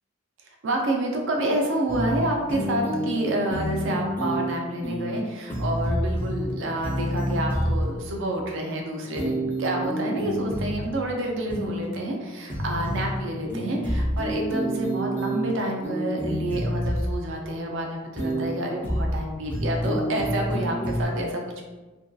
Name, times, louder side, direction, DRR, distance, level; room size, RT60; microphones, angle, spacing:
voice 1, 0.6-21.6, right 1 dB, 65° right, 1 dB, 0.4 m, -28 dB
sound 1, 1.9-2.2 2.5-3.2 3.5-4.5 4.8-5.2 5.5-6.5 6.8-7.8 9.2-10.8 11.5-11.8 12.5-13.2 13.5-15.5 15.8-17.2 18.2-18.5 18.8-19.2 19.5-21.1, equal, 10° left, 0.4 m, -28 dB
2.6 x 2.2 x 2.2 m, 1.2 s
head